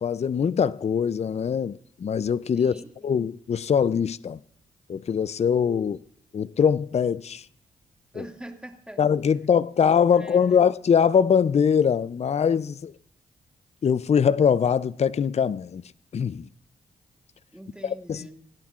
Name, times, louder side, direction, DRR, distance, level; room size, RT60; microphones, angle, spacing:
voice 1, 0.0-2.7 3.0-4.4 4.9-6.0 6.3-7.4 8.2-8.3 9.0-12.9 13.8-15.8 16.1-16.5 17.8-18.2, left 7 dB, 45° left, 0.5 m, -22 dB
voice 2, 2.5-3.2 8.1-9.0 10.1-10.7 17.5-18.4, right 1 dB, 5° right, 2.2 m, -43 dB
26.0 x 10.5 x 2.5 m
supercardioid pair, 45°, 16 cm